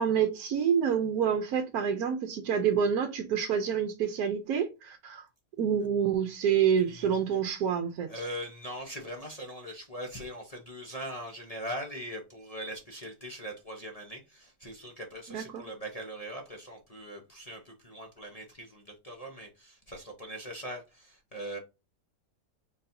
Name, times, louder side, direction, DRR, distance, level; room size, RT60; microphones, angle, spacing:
voice 1, 0.0-5.2 5.6-8.1 15.3-15.6, right 7 dB, 70° right, 1.1 m, -27 dB
voice 2, 6.8-7.2 8.1-21.6, equal, 35° left, 0.7 m, -41 dB
4.1 x 3.9 x 2.6 m
omnidirectional pair, 1.8 m